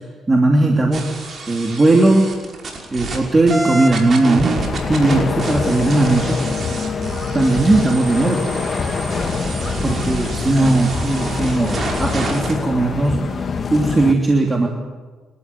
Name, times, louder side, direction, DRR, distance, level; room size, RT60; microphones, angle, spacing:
voice 1, 0.3-1.1 1.5-2.3 2.9-4.5 4.9-6.4 7.3-8.4 9.8-13.4 13.7-14.7, right 2 dB, 25° right, 1 dB, 3.0 m, -17 dB
sound 1, 0.9-3.2 3.5-12.5, right 2 dB, 45° right, 5.8 m, -28 dB
sound 2, 4.6-14.1, left 5 dB, 45° left, 1.8 m, -25 dB
Wind instrument woodwind instrument, 5.1-9.7, left 6 dB, 25° left, 7.8 m, -32 dB
28.5 x 13.0 x 9.6 m, 1.4 s
cardioid pair, 90°, 0 cm